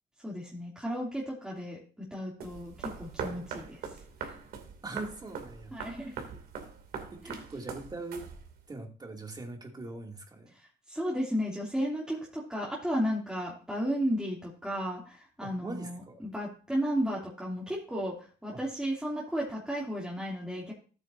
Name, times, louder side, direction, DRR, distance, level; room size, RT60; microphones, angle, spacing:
voice 1, 0.2-4.3 5.7-6.2 7.2-7.4 10.5-20.7, equal, 5° right, -5 dB, 2.8 m, -34 dB
sound 1, 2.4-8.7, right 6 dB, 65° right, 2.8 m, -42 dB
voice 2, 4.8-6.1 7.1-8.3 8.7-10.5 15.4-16.2 18.5-18.6, right 2 dB, 25° right, 2 dB, 2.7 m, -41 dB
14.0 x 8.9 x 2.7 m, 0.39 s
cardioid pair, 110°, 17 cm